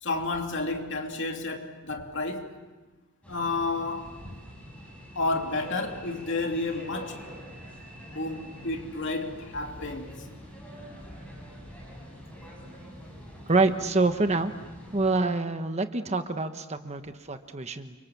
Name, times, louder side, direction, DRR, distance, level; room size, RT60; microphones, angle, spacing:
voice 1, 0.0-2.6 3.3-4.3 5.1-7.2 8.1-10.2, left 2 dB, 55° left, 2.9 m, -31 dB
sound 1, 3.2-15.1, equal, 5° left, 7.3 m, -45 dB
voice 2, 13.5-14.5 14.9-17.9, right 3 dB, 30° right, 1.1 m, -26 dB
29.5 x 25.5 x 7.2 m
head